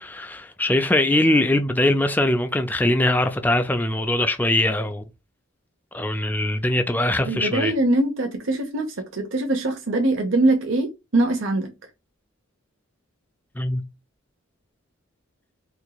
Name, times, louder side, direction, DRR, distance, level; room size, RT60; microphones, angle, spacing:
voice 1, 0.0-5.0 5.9-7.7 13.6-13.8, left 1 dB, 10° left, 0.3 m, -22 dB
voice 2, 7.2-11.7, right 2 dB, 65° right, 0.8 m, -22 dB
4.4 x 2.9 x 2.2 m
head